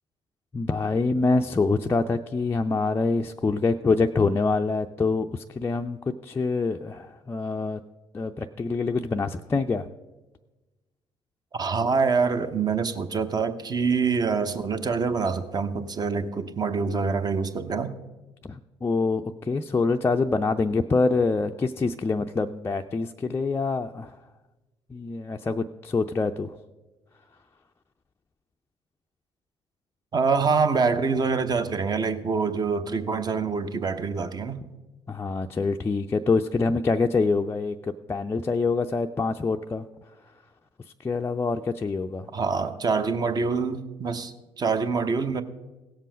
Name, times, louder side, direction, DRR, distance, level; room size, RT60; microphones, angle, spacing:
voice 1, 0.5-7.8 8.1-9.9 18.4-24.2 24.9-26.5 35.1-37.8 38.1-39.9 41.0-42.3, left 3 dB, 20° left, 0.4 m, -25 dB
voice 2, 11.5-17.9 30.1-34.6 42.3-45.4, right 5 dB, 30° right, 0.9 m, -25 dB
17.0 x 7.4 x 5.1 m
figure-of-eight pair, 50°, 13 cm